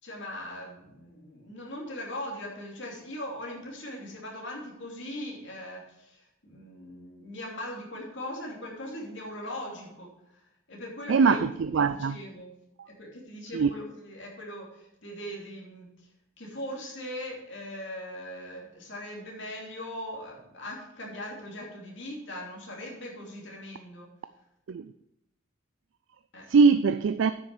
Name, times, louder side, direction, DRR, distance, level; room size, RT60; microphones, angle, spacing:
voice 1, 0.0-11.4 11.8-12.5 13.0-16.1 16.4-24.1 26.3-26.5, left 1 dB, 55° left, 2.9 m, -40 dB
voice 2, 11.1-12.2 12.8-12.9 13.5-13.7 24.7-24.9 26.5-27.3, right 5 dB, 60° right, 0.3 m, -22 dB
9.7 x 6.3 x 6.2 m
head